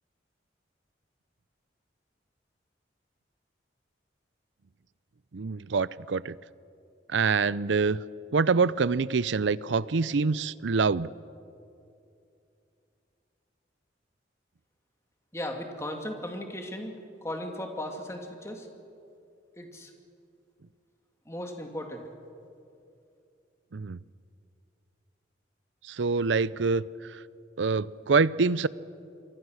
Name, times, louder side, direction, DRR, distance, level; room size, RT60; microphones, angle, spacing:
voice 1, 5.3-6.4 7.1-8.0 8.3-11.1 23.7-24.0 25.9-26.8 27.6-28.7, right 4 dB, 80° right, 19 dB, 0.6 m, -25 dB
voice 2, 15.3-16.9 17.2-18.7 19.6-19.9 21.3-22.0, left 1 dB, 15° left, 3 dB, 2.4 m, -36 dB
27.5 x 24.0 x 6.5 m, 2.6 s
head